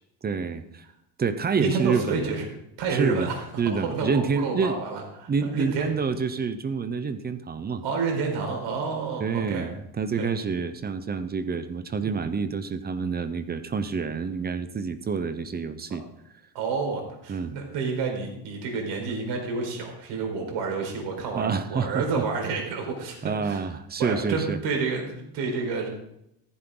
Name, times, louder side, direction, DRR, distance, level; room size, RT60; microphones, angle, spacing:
voice 1, 0.2-0.9 1.2-2.3 2.9-3.3 3.6-4.8 5.3-7.8 9.2-16.0 17.3-17.5 21.3-22.0 23.2-24.6, right 5 dB, 20° right, 11 dB, 0.7 m, -28 dB
voice 2, 1.6-2.5 2.8-5.9 7.8-9.7 10.2-10.3 16.5-23.7 24.0-25.9, right 4 dB, 70° right, 2 dB, 4.6 m, -29 dB
15.0 x 15.0 x 3.9 m, 0.80 s
cardioid pair, 180°, 44 cm